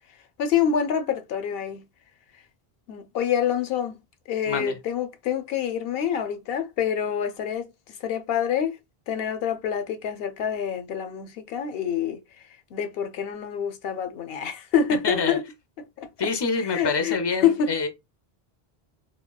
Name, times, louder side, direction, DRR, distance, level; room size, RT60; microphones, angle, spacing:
voice 1, 0.4-1.9 2.9-4.0 4.3-7.7 8.0-8.8 9.1-12.2 12.7-15.4 15.8-16.1 16.6-17.7, left 8 dB, 70° left, 0.8 m, -26 dB
voice 2, 15.0-15.4 16.2-17.9, left 4 dB, 30° left, 0.5 m, -26 dB
3.6 x 2.2 x 2.2 m
omnidirectional pair, 1.0 m